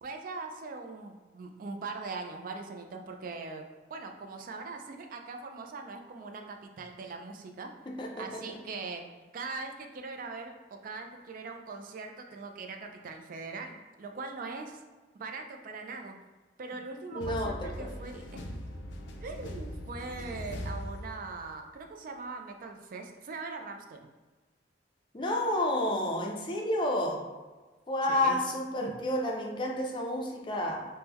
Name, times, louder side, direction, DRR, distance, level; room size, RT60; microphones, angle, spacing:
voice 1, 0.0-3.6 3.9-7.7 8.2-9.0 9.3-14.8 15.2-16.2 16.6-18.5 19.2-24.1 28.1-28.4 28.8-28.9, right 3 dB, 50° right, 4 dB, 0.3 m, -41 dB
voice 2, 7.9-8.4 17.2-17.9 25.1-27.2 27.9-30.9, left 1 dB, 25° left, 0 dB, 0.4 m, -30 dB
sound 1, 17.2-21.7, equal, 90° left, 0.4 m, -40 dB
3.5 x 2.1 x 2.9 m, 1.3 s
head